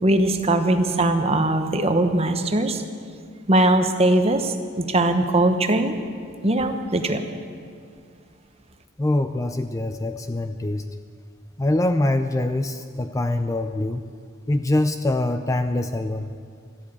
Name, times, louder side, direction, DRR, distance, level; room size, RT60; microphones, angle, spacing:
voice 1, 0.0-2.8 3.5-5.9 6.4-7.2, right 1 dB, 30° right, 7 dB, 1.0 m, -20 dB
voice 2, 9.0-10.9 11.6-14.0 14.5-16.3, left 1 dB, 15° left, 8 dB, 0.4 m, -24 dB
13.0 x 12.5 x 8.6 m, 2.2 s
head